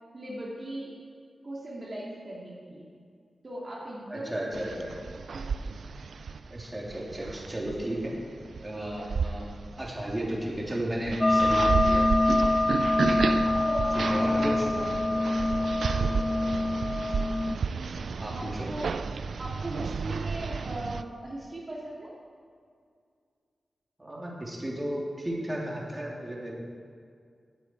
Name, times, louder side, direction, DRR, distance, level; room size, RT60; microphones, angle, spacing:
voice 1, 0.1-0.9 1.4-2.9 3.4-4.8 5.3-5.5 13.1-15.5 18.4-18.9 19.4-22.1, right 1 dB, 45° right, -5 dB, 2.7 m, -39 dB
voice 2, 4.1-4.9 6.5-8.1 8.6-9.4 9.8-12.1 13.9-14.6 18.2-18.7 24.0-26.5, right 1 dB, 20° right, -4 dB, 3.3 m, -33 dB
sound 1, 4.5-21.0, right 5 dB, 80° right, 0.4 m, -32 dB
sound 2, 11.2-17.6, left 2 dB, 25° left, 0.3 m, -25 dB
18.0 x 8.9 x 4.7 m, 2.2 s
wide cardioid pair, 75°, 0 cm